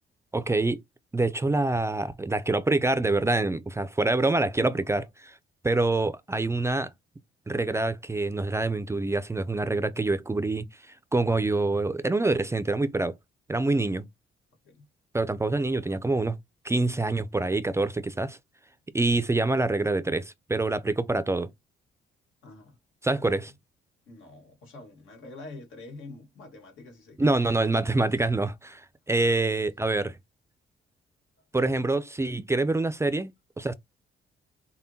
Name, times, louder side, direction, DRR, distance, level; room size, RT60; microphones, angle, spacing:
voice 1, 0.3-0.8 1.1-5.4 5.6-6.9 7.5-10.6 11.1-13.1 13.5-14.1 15.1-16.4 16.6-18.4 18.9-21.5 23.0-23.5 27.2-30.2 31.5-33.7, right 2 dB, 15° right, 0.4 m, -26 dB
voice 2, 22.4-22.8 23.1-23.5 24.1-28.3, left 2 dB, 85° left, 1.5 m, -47 dB
5.4 x 2.1 x 2.6 m
cardioid pair, 90°, 20 cm